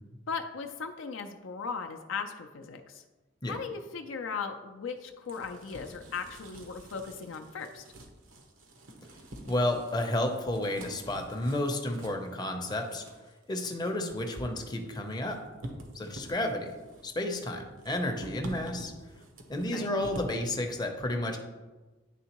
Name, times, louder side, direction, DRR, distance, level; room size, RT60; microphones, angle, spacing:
voice 1, 0.3-3.0 3.5-7.8 19.7-19.9, left 5 dB, 70° left, 5 dB, 0.4 m, -37 dB
sound 1, 4.9-20.4, right 1 dB, 85° right, 0.9 m, -48 dB
voice 2, 9.5-13.0 13.5-15.5 15.9-16.7 17.0-18.9 19.5-21.4, left 1 dB, 20° left, 3 dB, 0.6 m, -31 dB
9.9 x 3.5 x 3.0 m, 1.2 s
head